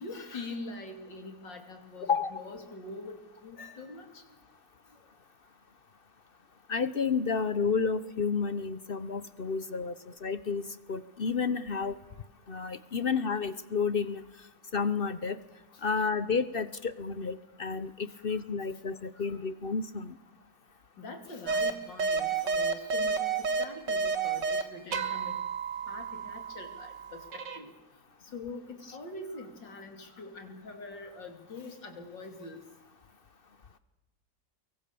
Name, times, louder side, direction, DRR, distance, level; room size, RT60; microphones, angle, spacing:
voice 1, 0.0-4.2 18.3-18.4 19.2-19.4 21.0-25.3 25.9-27.7 28.3-32.6, left 3 dB, 70° left, 5 dB, 3.7 m, -44 dB
voice 2, 2.0-2.3 6.7-12.0 12.5-14.2 14.7-15.4 15.8-20.1, left 5 dB, 50° left, 14 dB, 0.7 m, -31 dB
sound 1, 21.5-21.7 22.0-24.6 24.9-27.6, right 5 dB, 65° right, 2.2 m, -31 dB
24.5 x 23.0 x 7.0 m, 1.1 s
omnidirectional pair, 2.1 m